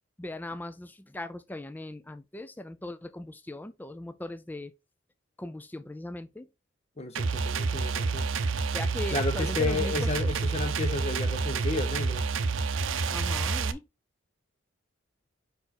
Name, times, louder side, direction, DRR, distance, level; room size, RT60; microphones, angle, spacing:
voice 1, 0.2-4.7 5.4-6.5 8.7-10.2 13.1-13.9, left 1 dB, 10° left, 0.3 m, -39 dB
voice 2, 7.0-8.3 9.1-12.2, left 3 dB, 30° left, 0.8 m, -32 dB
sound 1, 7.2-13.7, right 4 dB, 70° right, 0.6 m, -28 dB
5.1 x 4.4 x 4.2 m
head